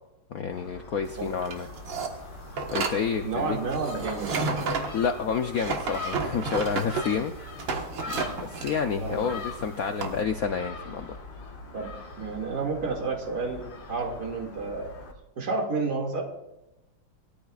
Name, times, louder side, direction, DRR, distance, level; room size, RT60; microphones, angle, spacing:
voice 1, 0.3-1.7 2.7-3.6 4.9-7.6 8.0-11.2, left 6 dB, 75° left, 6 dB, 0.8 m, -29 dB
Gull seagull, 0.5-15.1, left 3 dB, 55° left, 2.1 m, -42 dB
sound 1, 1.1-10.2, right 4 dB, 65° right, 2.0 m, -32 dB
voice 2, 3.2-4.3 9.0-9.4 11.7-13.6 13.9-14.9 15.4-16.2, right 4 dB, 50° right, 0 dB, 2.7 m, -30 dB
20.0 x 13.5 x 2.4 m, 0.94 s
omnidirectional pair, 2.3 m